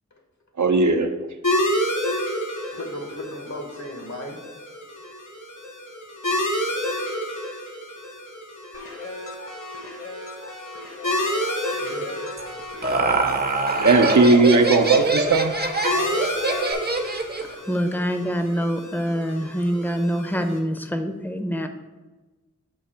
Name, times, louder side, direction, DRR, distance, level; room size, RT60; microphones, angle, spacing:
voice 1, 0.6-1.1 13.8-15.5, right 3 dB, 75° right, 0.6 m, -17 dB
sound 1, 1.4-20.6, equal, 90° left, 0.9 m, -30 dB
voice 2, 2.7-4.4 11.6-12.1, left 1 dB, 70° left, 1.2 m, -35 dB
sound 2, 8.7-16.7, left 2 dB, 50° left, 0.9 m, -37 dB
Laughter, 12.4-17.5, right 2 dB, 35° right, 0.6 m, -24 dB
voice 3, 17.4-21.7, equal, 5° left, 0.5 m, -25 dB
6.9 x 2.8 x 5.5 m
wide cardioid pair, 40°, 29 cm